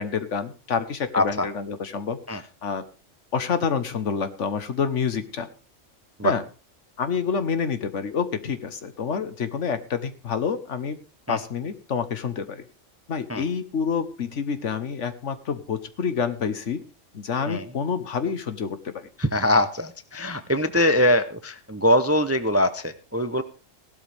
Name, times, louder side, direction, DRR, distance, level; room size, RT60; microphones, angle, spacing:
voice 1, 0.0-2.8 3.3-5.5 6.2-6.4 7.0-11.0 11.3-12.6 13.1-16.8 17.1-19.1, left 6 dB, 70° left, 11 dB, 1.4 m, -28 dB
voice 2, 1.1-1.5 2.3-2.4 6.2-6.3 11.3-11.4 13.3-13.4 17.5-17.7 19.2-23.4, left 1 dB, 15° right, 11 dB, 0.5 m, -22 dB
16.5 x 12.0 x 3.5 m, 0.35 s
omnidirectional pair, 1.3 m